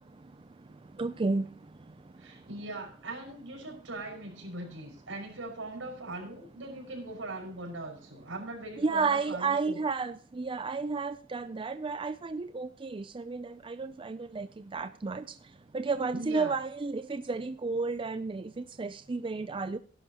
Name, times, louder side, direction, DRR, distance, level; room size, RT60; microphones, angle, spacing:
voice 1, 1.0-1.4 8.8-15.2 15.7-18.5 18.8-19.8, right 4 dB, 25° right, 12 dB, 0.4 m, -32 dB
voice 2, 2.2-9.8 16.1-16.5, right 2 dB, 85° right, 1 dB, 5.6 m, -40 dB
16.0 x 11.5 x 2.9 m, 0.41 s
head